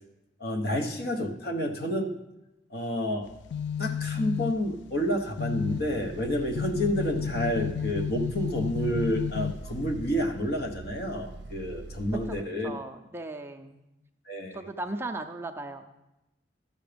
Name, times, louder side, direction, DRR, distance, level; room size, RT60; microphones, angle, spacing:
voice 1, 0.4-2.1 2.7-3.3 3.8-12.7 14.3-14.6, equal, 60° left, 3 dB, 1.1 m, -29 dB
sound 1, 3.2-10.1, left 8 dB, 80° left, 0.4 m, -33 dB
sound 2, 5.7-12.4, right 2 dB, 85° right, 0.6 m, -43 dB
voice 2, 12.3-13.8 14.5-15.8, right 2 dB, 15° right, 4 dB, 0.5 m, -37 dB
12.5 x 6.9 x 5.1 m, 0.94 s
head